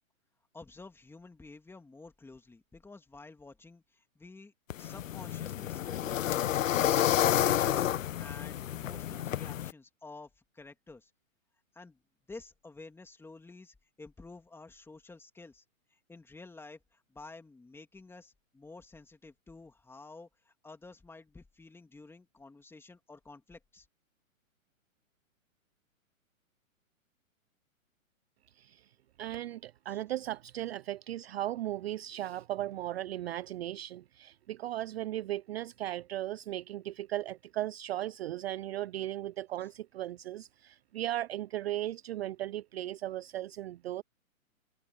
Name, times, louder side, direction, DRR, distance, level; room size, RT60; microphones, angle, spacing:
voice 1, 0.5-6.9 7.2-11.1 11.7-12.0 12.3-15.6 15.9-23.9 29.9-30.0 39.6-39.7, left 3 dB, 5° left, 2.8 m, -51 dB
sound 1, 4.7-9.7, left 11 dB, 70° left, 0.9 m, -30 dB
voice 2, 28.6-28.9 29.2-44.0, right 13 dB, 50° right, 0.5 m, -37 dB
hypercardioid pair, 135°, 41 cm